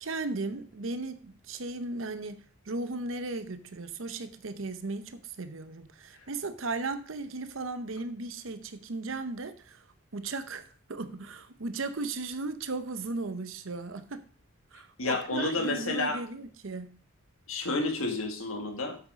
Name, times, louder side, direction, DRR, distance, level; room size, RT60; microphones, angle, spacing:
voice 1, 0.0-9.8 10.1-14.2 14.7-17.0, right 3 dB, 70° right, 0.8 m, -36 dB
voice 2, 15.0-16.2 17.5-19.0, left 2 dB, 85° left, 2.0 m, -30 dB
7.9 x 6.6 x 5.0 m
head